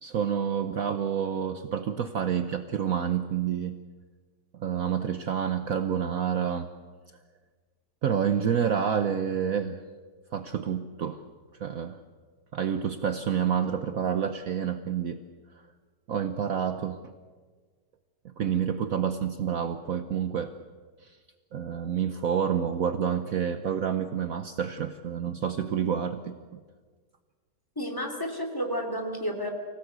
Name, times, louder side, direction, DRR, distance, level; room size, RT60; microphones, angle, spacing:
voice 1, 0.0-3.8 4.5-6.7 8.0-9.8 10.3-11.2 11.6-12.0 12.5-15.2 16.1-17.0 18.2-20.5 21.0-21.2 21.5-26.6, right 8 dB, 60° right, 9 dB, 1.2 m, -28 dB
voice 2, 27.8-29.5, equal, 10° left, 3 dB, 2.8 m, -31 dB
25.0 x 17.0 x 8.1 m, 1.5 s
omnidirectional pair, 1.8 m